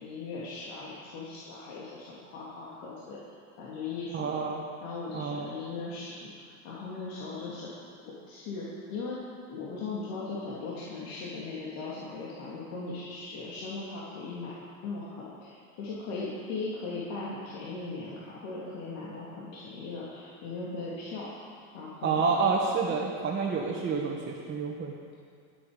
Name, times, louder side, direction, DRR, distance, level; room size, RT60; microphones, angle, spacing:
voice 1, 0.0-3.2 3.6-4.5 4.8-7.7 8.3-9.2 9.5-14.5 14.8-22.4, left 3 dB, 60° left, -7 dB, 3.3 m, -38 dB
voice 2, 4.1-4.6 5.1-5.5 22.0-24.9, right 5 dB, 25° right, -3 dB, 1.8 m, -29 dB
22.0 x 8.7 x 5.3 m, 2.2 s
supercardioid pair, 110°, 43 cm